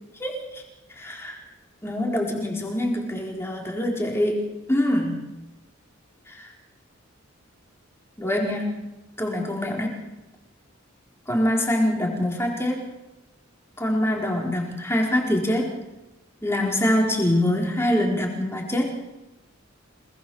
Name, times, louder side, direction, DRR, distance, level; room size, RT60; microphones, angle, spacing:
voice 1, 0.2-0.6 1.0-1.4 1.8-5.3 6.3-6.5 8.2-8.9 9.2-10.0 11.3-12.9 13.8-15.8 16.4-19.0, left 1 dB, 10° left, 0 dB, 4.5 m, -24 dB
27.0 x 20.0 x 7.2 m, 1.0 s
head